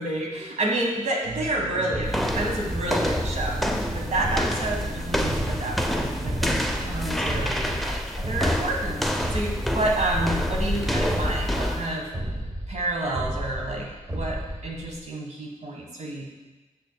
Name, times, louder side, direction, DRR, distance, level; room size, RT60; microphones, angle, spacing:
voice 1, 0.0-12.1 12.7-16.5, right 2 dB, 60° right, -1 dB, 1.5 m, -29 dB
sound 1, 1.2-7.8, right 2 dB, 85° right, 1.8 m, -37 dB
sound 2, 1.9-15.0, equal, 20° right, 1.1 m, -34 dB
sound 3, 2.1-12.0, equal, ahead, 0.6 m, -28 dB
6.7 x 6.6 x 2.3 m, 1.2 s
cardioid pair, 50°, 14 cm